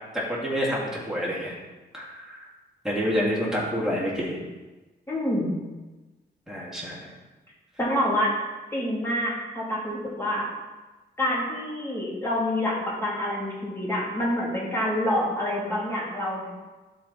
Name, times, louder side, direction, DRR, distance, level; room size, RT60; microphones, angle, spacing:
voice 1, 0.1-1.5 1.9-2.5 2.8-4.4 6.5-7.0, equal, 5° right, -6 dB, 2.7 m, -28 dB
voice 2, 5.1-5.6 7.8-8.4 8.7-10.5 11.2-16.5, left 1 dB, 15° left, -6 dB, 3.1 m, -27 dB
11.5 x 4.6 x 4.3 m, 1.2 s
cardioid pair, 115°, 19 cm